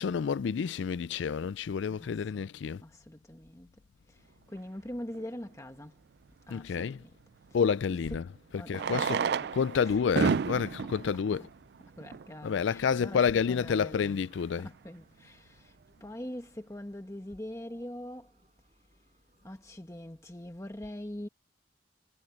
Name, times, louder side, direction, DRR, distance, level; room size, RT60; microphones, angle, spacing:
voice 1, 0.0-2.8 6.5-7.0 7.5-8.2 8.5-9.3 9.5-11.5 12.4-14.7, left 6 dB, 70° left, 0.4 m, -29 dB
voice 2, 1.9-2.5 2.8-3.7 4.1-6.0 6.5-7.1 7.5-8.2 8.5-10.2 10.6-11.5 12.0-14.2 14.5-18.3 19.4-21.3, left 1 dB, 15° left, 1.2 m, -44 dB
Fireworks, 5.1-5.2 7.5-7.6 8.7-12.4 13.2-13.3 13.5-13.6 13.8-13.9 14.4-14.6, right 6 dB, 55° right, 0.3 m, -32 dB
sound 1, 8.9-20.4, right 1 dB, 35° right, 5.7 m, -69 dB
head